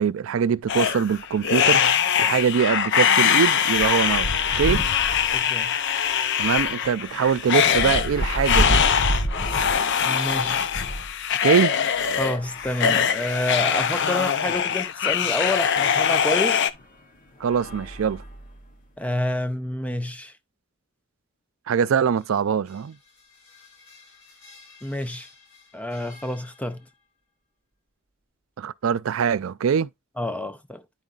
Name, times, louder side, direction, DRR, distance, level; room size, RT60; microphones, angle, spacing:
voice 1, 0.0-1.8 2.2-4.3 4.6-4.8 6.4-8.8 11.4-11.7 17.4-18.2 21.7-23.0 28.6-29.9, right 7 dB, 75° right, 0.4 m, -23 dB
sound 1, 0.6-0.8 1.2-1.3 1.6-11.1 11.8-13.2 13.9-14.0 14.2-14.3 16.0-16.1 16.7-16.9 17.4-18.7, equal, 40° left, 1.0 m, -31 dB
sound 2, 0.7-16.7, left 8 dB, 60° left, 0.5 m, -22 dB
voice 2, 5.3-5.7 10.0-10.7 12.2-16.6 19.0-20.3 24.8-25.3 25.7-26.8 30.2-30.8, left 1 dB, 5° left, 0.6 m, -28 dB
sound 3, 21.9-27.1, left 4 dB, 80° left, 5.7 m, -53 dB
9.8 x 5.3 x 2.4 m
head